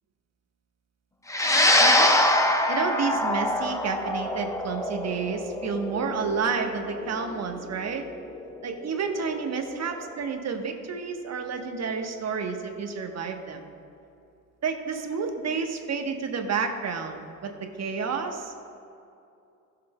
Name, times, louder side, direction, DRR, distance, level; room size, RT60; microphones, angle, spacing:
sound 1, 1.3-9.8, left 1 dB, 5° left, 0.8 m, -24 dB
voice 1, 1.8-2.2 2.7-8.0 8.6-13.6 14.6-18.6, right 5 dB, 35° right, 5 dB, 1.1 m, -30 dB
16.0 x 6.9 x 2.2 m, 2.6 s
hypercardioid pair, 70°, 46 cm